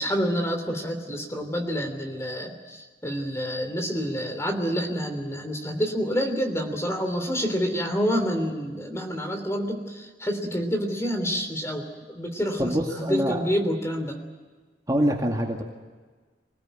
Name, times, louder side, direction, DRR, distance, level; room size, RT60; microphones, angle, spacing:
voice 1, 0.0-14.2, equal, 15° left, 5 dB, 3.1 m, -28 dB
voice 2, 12.6-13.4 14.9-15.6, equal, 20° right, 1 dB, 2.1 m, -25 dB
25.0 x 18.5 x 9.1 m, 1.4 s
head